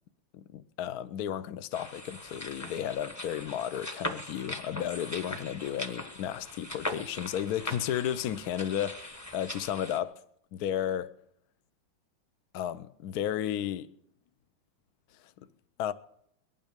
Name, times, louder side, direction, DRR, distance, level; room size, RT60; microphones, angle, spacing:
voice 1, 0.3-10.2 10.5-11.1 12.5-13.9 15.4-15.5 15.8-15.9, left 10 dB, 65° left, 1.0 m, -33 dB
sound 1, 1.7-10.0, left 1 dB, 10° left, 0.9 m, -40 dB
22.0 x 9.4 x 5.2 m
omnidirectional pair, 2.2 m